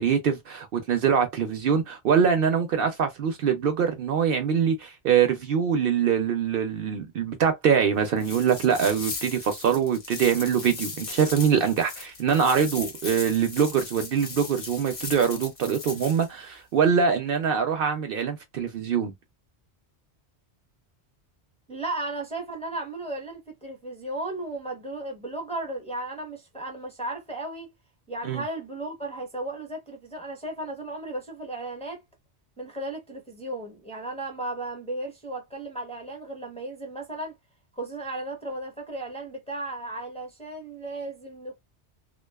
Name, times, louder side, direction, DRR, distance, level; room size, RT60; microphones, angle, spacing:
voice 1, 0.0-19.1 28.2-28.4, right 7 dB, 65° right, 0.7 m, -24 dB
sound 1, 8.2-16.3, left 4 dB, 45° left, 0.7 m, -38 dB
voice 2, 21.7-27.7 28.1-32.0 32.6-37.3 37.7-41.6, right 2 dB, 5° left, 0.6 m, -35 dB
2.4 x 2.2 x 2.2 m
omnidirectional pair, 1.1 m